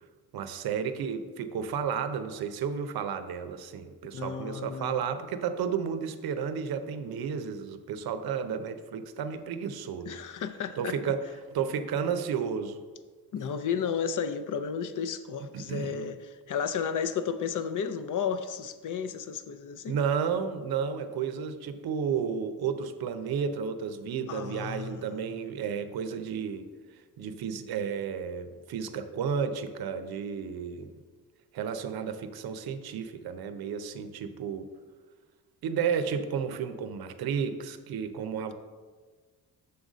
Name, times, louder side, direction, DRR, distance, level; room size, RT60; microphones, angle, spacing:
voice 1, 0.3-10.2 10.8-11.2 11.5-12.8 15.5-16.1 19.9-26.7 27.2-30.9 31.5-34.7 35.6-38.5, right 7 dB, 70° right, 10 dB, 0.6 m, -32 dB
voice 2, 4.1-5.0 10.1-11.0 13.3-16.2 16.5-20.0 24.3-25.0, left 7 dB, 50° left, 10 dB, 0.6 m, -33 dB
6.9 x 3.9 x 6.1 m, 1.4 s
cardioid pair, 110°, 39 cm